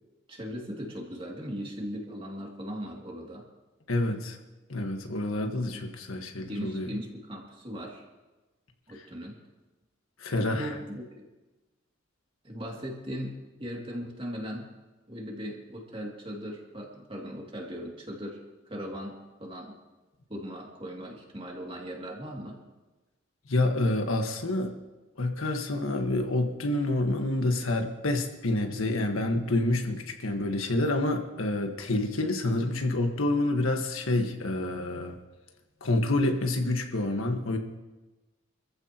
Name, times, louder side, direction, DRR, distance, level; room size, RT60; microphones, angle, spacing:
voice 1, 0.3-3.5 5.7-5.8 6.5-8.0 8.9-9.4 10.4-11.0 12.4-14.7 15.1-18.4 18.7-19.8 20.3-22.6, equal, 25° right, -1 dB, 2.5 m, -38 dB
voice 2, 3.9-4.4 4.7-6.9 10.2-10.7 23.5-24.7 25.2-35.2 35.8-37.6, left 2 dB, 85° left, 4 dB, 1.5 m, -28 dB
26.0 x 14.5 x 3.0 m, 1.1 s
head